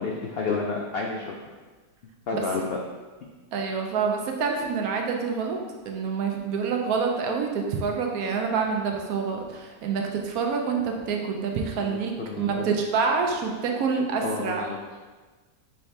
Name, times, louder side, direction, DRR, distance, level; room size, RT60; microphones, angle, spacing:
voice 1, 0.0-1.4 2.3-2.8 11.8-12.7 14.2-14.8, left 4 dB, 85° left, -1 dB, 0.5 m, -30 dB
voice 2, 3.5-5.6 5.9-14.6, right 5 dB, 75° right, 2 dB, 1.1 m, -27 dB
5.6 x 2.8 x 3.3 m, 1.3 s
omnidirectional pair, 1.6 m